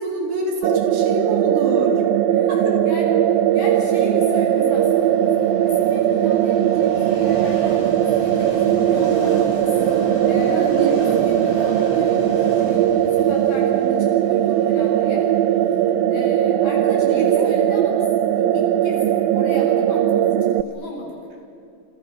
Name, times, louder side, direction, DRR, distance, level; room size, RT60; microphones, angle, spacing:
voice 1, 0.0-2.0 2.5-2.8 10.5-11.1 17.0-17.5, right 1 dB, 60° right, 1 dB, 5.8 m, -27 dB
sound 1, 0.6-20.6, right 11 dB, 85° right, 2.1 m, -19 dB
voice 2, 2.8-5.2 5.6-9.7 10.0-15.3 16.1-18.1 18.3-21.2, left 1 dB, 60° left, -2 dB, 9.4 m, -35 dB
Train, 3.4-19.3, left 1 dB, 20° left, 4.7 m, -36 dB
28.0 x 28.0 x 7.1 m, 2.5 s
omnidirectional pair, 5.2 m